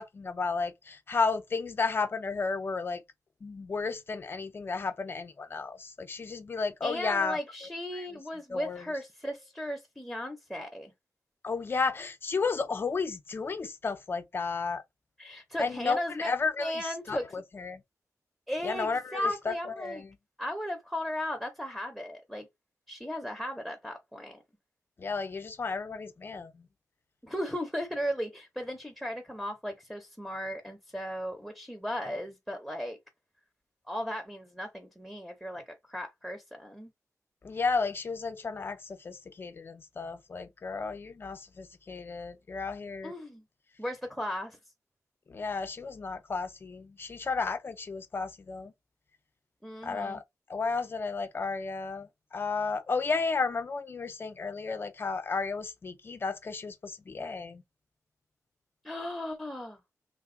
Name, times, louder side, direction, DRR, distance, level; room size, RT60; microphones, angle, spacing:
voice 1, 0.0-3.0 3.4-8.1 8.5-8.9 11.4-14.8 15.6-17.8 18.6-20.2 25.0-26.7 37.4-43.1 45.3-48.7 49.8-50.2 50.5-57.6, left 4 dB, 40° left, 0.5 m, -33 dB
voice 2, 6.8-10.9 15.2-16.3 16.6-17.3 18.5-20.0 20.4-22.5 22.9-24.4 27.2-33.0 33.9-36.9 43.0-43.4 43.8-44.6 49.6-50.2 58.8-59.8, equal, ahead, 0.7 m, -36 dB
3.3 x 2.2 x 3.7 m
wide cardioid pair, 155°, 6 cm